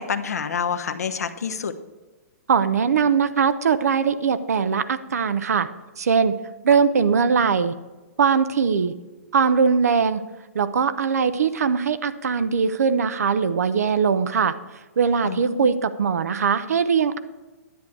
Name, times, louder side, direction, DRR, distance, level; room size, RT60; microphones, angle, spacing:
voice 1, 0.0-1.7 15.2-15.7, left 6 dB, 80° left, 9 dB, 0.9 m, -28 dB
voice 2, 2.5-5.7 6.0-6.4 6.6-7.7 8.2-8.9 9.3-10.2 10.5-14.6 15.0-17.2, right 6 dB, 75° right, 13 dB, 0.7 m, -21 dB
10.5 x 8.3 x 4.6 m, 1.2 s
hypercardioid pair, 125°, 8 cm